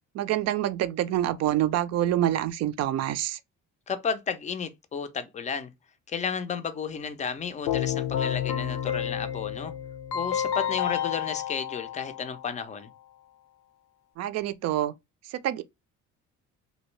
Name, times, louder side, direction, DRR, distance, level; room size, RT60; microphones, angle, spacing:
voice 1, 0.1-3.4 14.2-14.9 15.3-15.6, right 12 dB, 60° right, 0.4 m, -26 dB
voice 2, 3.9-5.7 6.1-9.7 10.1-12.9, left 6 dB, 25° left, 0.4 m, -33 dB
Keyboard (musical), 7.7-12.6, left 9 dB, 85° left, 0.6 m, -30 dB
3.0 x 2.7 x 3.1 m
cardioid pair, 145°, 30 cm